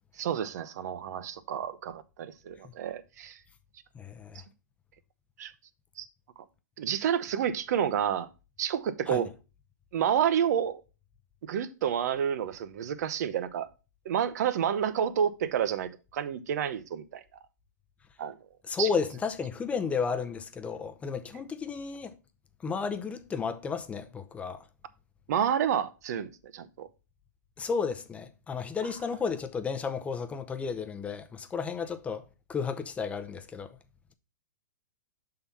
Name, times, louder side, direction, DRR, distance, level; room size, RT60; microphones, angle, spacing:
voice 1, 0.2-3.4 5.4-5.5 6.0-6.1 6.8-8.3 8.6-9.3 9.9-10.8 11.5-13.7 14.0-17.2 18.2-18.4 18.8-18.9 25.3-26.9, right 9 dB, 60° right, 0.8 m, -29 dB
voice 2, 3.9-4.4 9.1-9.2 18.7-22.1 22.6-24.6 27.6-32.2 32.5-33.8, left 5 dB, 15° left, 0.6 m, -33 dB
6.8 x 3.8 x 5.6 m
hypercardioid pair, 130°, 10 cm